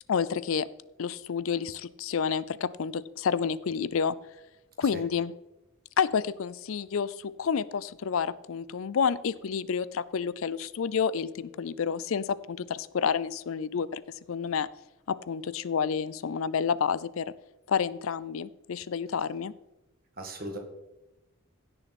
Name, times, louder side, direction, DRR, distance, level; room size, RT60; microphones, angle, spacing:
voice 1, 0.1-0.7 1.0-4.2 4.8-5.3 6.0-14.0 14.3-14.7 15.1-17.3 17.7-19.5, left 6 dB, 75° left, 18 dB, 0.4 m, -29 dB
voice 2, 20.2-20.6, right 1 dB, 45° right, 3 dB, 2.1 m, -38 dB
16.0 x 6.7 x 4.2 m, 0.96 s
head